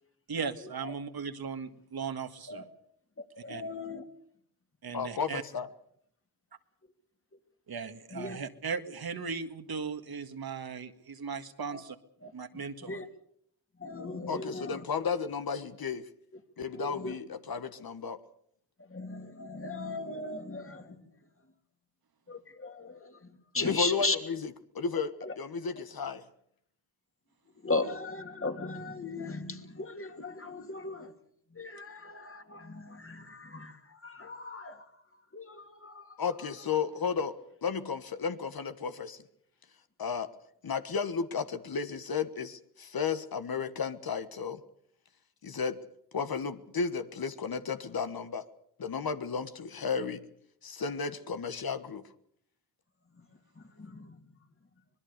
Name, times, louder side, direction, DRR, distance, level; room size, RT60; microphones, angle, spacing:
voice 1, 0.3-2.6 3.4-3.6 4.8-5.4 7.7-12.0 12.3-13.0 23.5-23.7, right 5 dB, 60° right, 8 dB, 1.9 m, -37 dB
voice 2, 3.4-4.0 8.1-8.4 11.7-11.8 12.2-12.3 12.9-13.0 13.8-14.7 16.8-17.1 18.9-21.0 22.3-23.1 23.5-24.2 25.3-25.4 27.6-31.1 31.6-33.7 34.0-34.8 35.3-36.0 53.8-54.1, left 3 dB, 30° left, 6 dB, 2.9 m, -36 dB
voice 3, 4.9-5.7 14.3-16.1 16.6-18.2 23.6-26.2 36.2-39.2 40.0-40.3 40.6-44.6 45.4-45.8 46.1-48.4 48.8-50.3 50.6-52.1, left 6 dB, 60° left, 10 dB, 1.6 m, -33 dB
25.0 x 20.5 x 6.7 m, 0.70 s
cardioid pair, 65°, 41 cm